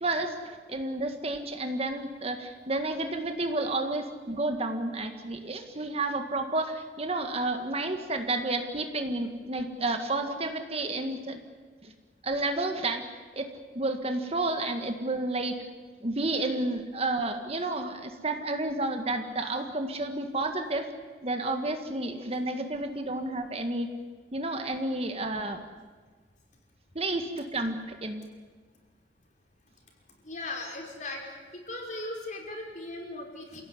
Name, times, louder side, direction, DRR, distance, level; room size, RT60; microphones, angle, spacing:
voice 1, 0.0-11.4 11.8-11.9 12.2-13.1 13.3-13.5 13.8-15.6 16.0-20.9 21.2-23.9 24.3-25.6 27.0-28.2, right 2 dB, 35° right, 6 dB, 1.8 m, -31 dB
voice 2, 30.2-31.2 31.5-33.6, left 2 dB, 45° left, 1 dB, 5.4 m, -38 dB
27.5 x 17.0 x 9.7 m, 1.4 s
head